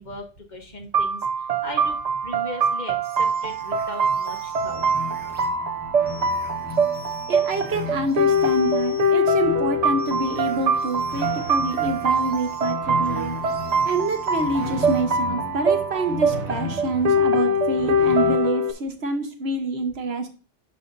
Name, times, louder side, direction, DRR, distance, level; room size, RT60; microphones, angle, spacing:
voice 1, 0.0-2.0 2.2-4.9, left 2 dB, 45° left, 3 dB, 1.2 m, -38 dB
sound 1, 0.9-18.7, right 1 dB, 45° right, 0.6 m, -23 dB
sound 2, 3.0-5.5 6.1-9.2 10.0-15.0, left 2 dB, 10° right, 1.5 m, -47 dB
sound 3, 4.6-18.4, left 5 dB, 70° left, 2.7 m, -36 dB
voice 2, 7.3-13.3 13.8-20.3, right 2 dB, 70° right, 5 dB, 1.3 m, -27 dB
10.0 x 5.6 x 2.6 m, 0.34 s
omnidirectional pair, 1.1 m